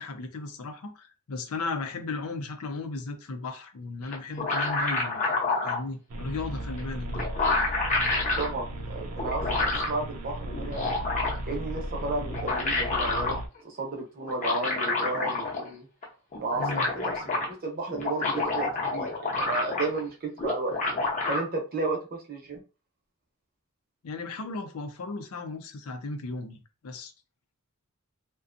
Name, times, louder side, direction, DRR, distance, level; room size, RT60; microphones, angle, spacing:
voice 1, 0.0-5.2 5.6-7.2 16.6-16.8 24.0-27.1, left 3 dB, 85° left, 0.5 m, -35 dB
sound 1, 4.1-5.8 6.8-6.9 7.1-8.5 9.2-10.0 10.5-11.5 12.2-13.4 14.3-15.7 16.0-16.1 16.3-17.5 17.9-20.1 20.4-21.4, left 3 dB, 35° left, 0.7 m, -28 dB
sound 2, 6.1-13.5, right 1 dB, 85° right, 0.5 m, -36 dB
voice 2, 8.4-10.9 11.4-13.4 13.6-15.9 16.4-20.8 21.3-22.6, right 3 dB, 45° right, 0.7 m, -33 dB
2.5 x 2.2 x 2.5 m
head